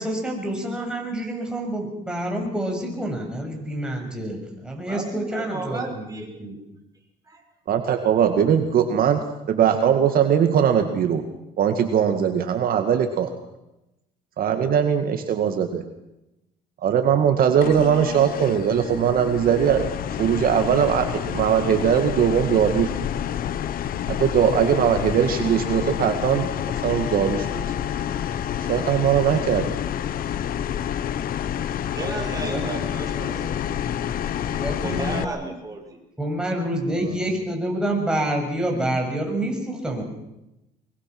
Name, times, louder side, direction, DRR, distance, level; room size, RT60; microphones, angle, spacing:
voice 1, 0.0-6.6 32.0-32.7 33.3-33.6 34.5-35.4 36.2-40.0, right 1 dB, 5° right, 0 dB, 6.9 m, -28 dB
voice 2, 4.8-6.5 7.2-7.4 31.9-33.7 34.7-36.0, right 3 dB, 20° right, 2 dB, 5.7 m, -34 dB
voice 3, 7.7-9.2 9.5-11.2 11.6-13.3 14.4-15.8 16.8-19.9 20.2-22.9 24.1-26.5 26.8-27.6 28.7-29.7, right 8 dB, 60° right, 6 dB, 2.1 m, -20 dB
sound 1, 17.6-35.2, left 10 dB, 60° left, 1.1 m, -28 dB
23.5 x 22.5 x 6.1 m, 0.92 s
cardioid pair, 110°, 17 cm